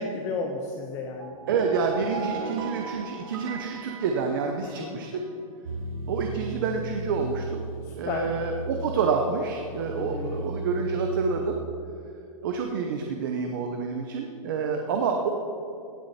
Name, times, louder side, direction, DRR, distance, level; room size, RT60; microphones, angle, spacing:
voice 1, 0.0-1.3 4.6-5.0 7.8-8.3 10.0-10.5, left 4 dB, 15° left, 2 dB, 0.6 m, -33 dB
sound 1, 1.1-5.1, right 6 dB, 50° right, 1.4 m, -38 dB
voice 2, 1.5-5.2 6.1-7.7 8.0-11.6 12.4-15.3, right 5 dB, 35° right, 3 dB, 0.9 m, -28 dB
sound 2, 5.6-11.4, right 2 dB, 70° right, 1.1 m, -36 dB
17.0 x 10.0 x 4.3 m, 2.6 s
hypercardioid pair, 170°, 18 cm